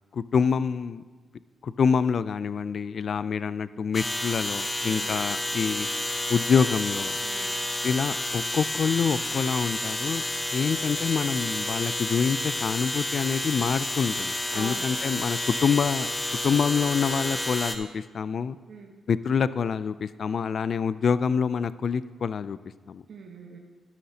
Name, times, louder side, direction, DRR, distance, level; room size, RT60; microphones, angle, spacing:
voice 1, 0.1-1.0 1.6-5.9 6.3-7.2 7.8-10.2 10.5-16.1 16.4-18.6 19.1-22.6 22.9-23.0, left 6 dB, 55° left, 15 dB, 0.3 m, -26 dB
sound 1, 3.9-17.8, left 1 dB, 15° left, 0.7 m, -30 dB
voice 2, 4.9-5.2 7.2-7.6 14.5-14.9 18.7-19.0 23.1-23.6, right 3 dB, 65° right, 1 dB, 1.1 m, -42 dB
12.0 x 11.5 x 2.8 m, 1.4 s
cardioid pair, 120°, 0 cm